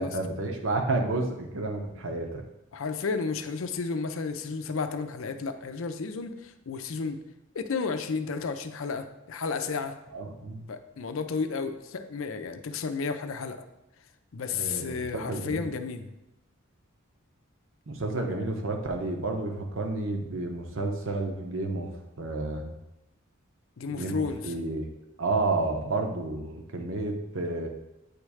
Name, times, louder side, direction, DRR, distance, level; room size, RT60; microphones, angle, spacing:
voice 1, 0.0-2.4 10.1-10.7 14.5-15.7 17.9-21.9 22.2-22.7 23.9-24.8 25.2-27.7, right 2 dB, 65° right, 3 dB, 0.9 m, -31 dB
voice 2, 2.7-7.2 7.5-10.0 10.7-13.7 14.3-16.1 23.8-24.5, left 4 dB, 70° left, 8 dB, 0.5 m, -32 dB
8.5 x 3.2 x 4.8 m, 0.93 s
head